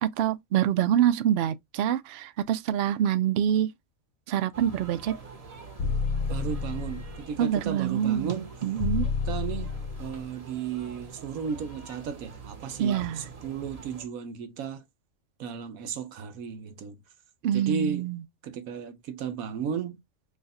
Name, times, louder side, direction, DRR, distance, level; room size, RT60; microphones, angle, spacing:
voice 1, 0.2-3.7 4.3-5.1 7.4-9.0 12.8-13.2 17.4-18.2, right 10 dB, 65° right, 0.6 m, -26 dB
sound 1, 4.5-14.1, right 4 dB, 30° right, 0.8 m, -45 dB
sound 2, 5.8-7.2 8.8-10.2, left 5 dB, 65° left, 0.8 m, -30 dB
voice 2, 6.3-8.5 9.2-9.7 10.0-14.8 15.4-17.0 17.5-18.1 18.4-20.0, right 6 dB, 90° right, 1.2 m, -34 dB
3.2 x 2.4 x 4.0 m
omnidirectional pair, 1.5 m